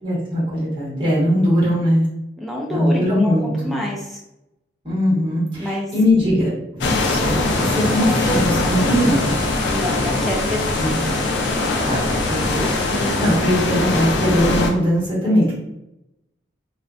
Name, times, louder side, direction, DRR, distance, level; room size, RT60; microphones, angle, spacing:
voice 1, 0.0-2.0 2.7-3.8 4.8-9.3 10.8-10.9 11.8-15.5, equal, 25° right, -9 dB, 1.2 m, -20 dB
voice 2, 2.4-4.2 5.6-5.9 7.9-8.8 9.7-11.2 12.9-13.4, equal, ahead, -3 dB, 0.4 m, -28 dB
sound 1, 6.8-14.7, left 2 dB, 70° left, 0.4 m, -21 dB
sound 2, 7.4-13.4, left 1 dB, 50° left, 0.9 m, -32 dB
2.5 x 2.2 x 2.4 m, 0.89 s
head